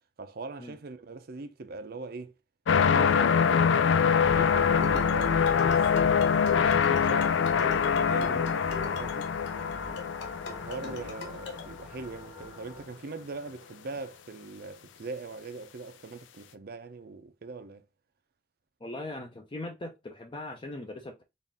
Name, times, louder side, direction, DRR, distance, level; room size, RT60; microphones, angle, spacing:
voice 1, 0.2-2.4 2.7-9.3 10.5-17.8, right 3 dB, 55° right, 0.5 m, -42 dB
sound 1, 2.7-11.8 12.4-12.5, left 6 dB, 85° left, 0.4 m, -24 dB
sound 2, 4.2-12.9, equal, 15° right, 0.6 m, -42 dB
sound 3, 4.7-11.6, left 4 dB, 65° left, 0.8 m, -43 dB
voice 2, 18.8-21.2, left 2 dB, 25° left, 0.6 m, -40 dB
4.0 x 2.5 x 3.5 m
head